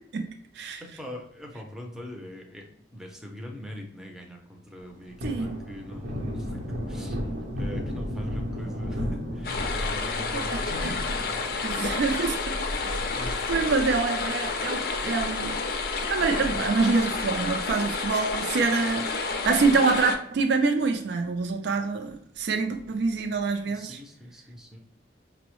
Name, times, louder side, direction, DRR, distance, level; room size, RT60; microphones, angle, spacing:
voice 1, 0.8-2.7 2.9-7.2 7.6-11.2 13.1-13.7 23.6-24.8, left 1 dB, 5° right, 1 dB, 0.5 m, -41 dB
Thunder, 4.8-15.5 15.9-16.0 16.4-17.9 18.1-18.3 18.6-19.4 19.8-19.9 20.3-20.4 22.8-23.3, equal, 90° right, 0.8 m, -36 dB
voice 2, 5.2-5.6 10.3-10.9 11.6-12.4 12.9-13.2 13.5-15.5 16.1-24.0, right 4 dB, 65° right, 4 dB, 0.4 m, -26 dB
sound 1, 9.4-20.2, left 4 dB, 50° left, 0.4 m, -30 dB
5.2 x 2.0 x 3.0 m, 0.70 s
head